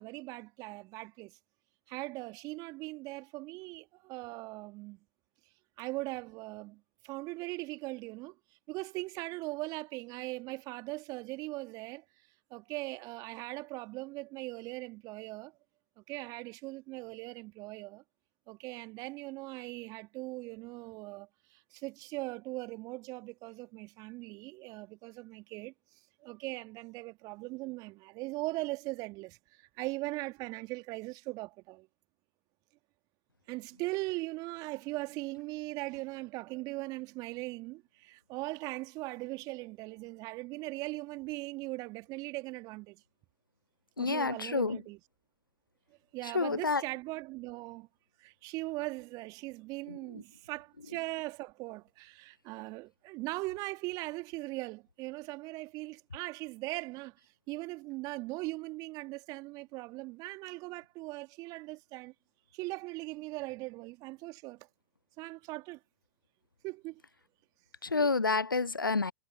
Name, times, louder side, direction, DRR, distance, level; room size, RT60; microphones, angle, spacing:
voice 1, 0.0-1.4 1.9-5.0 5.8-8.4 8.7-12.0 12.5-15.5 16.0-18.0 18.5-25.7 26.2-31.9 33.5-43.0 44.0-45.0 46.1-47.9 48.2-57.2 57.5-62.1 62.5-64.7 65.2-65.8 66.6-67.0, right 22 dB, 35° right, 2.2 m, -40 dB
voice 2, 44.0-44.8 46.3-46.8 49.9-50.2 67.8-69.1, left 4 dB, 90° left, 0.5 m, -29 dB
figure-of-eight pair, 105°, 11 cm